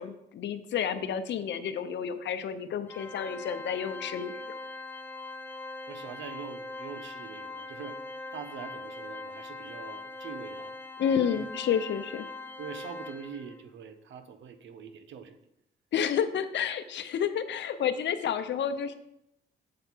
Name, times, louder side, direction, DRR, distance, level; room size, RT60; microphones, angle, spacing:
voice 1, 0.0-4.3 11.0-12.3 15.9-18.9, left 8 dB, 65° left, 10 dB, 0.7 m, -30 dB
Organ, 2.9-13.6, left 2 dB, 10° left, 0.4 m, -41 dB
voice 2, 5.9-8.0 8.3-10.8 11.3-11.5 12.6-15.4, right 7 dB, 70° right, 9 dB, 0.9 m, -43 dB
7.7 x 4.5 x 6.1 m, 0.80 s
cardioid pair, 90°, 20 cm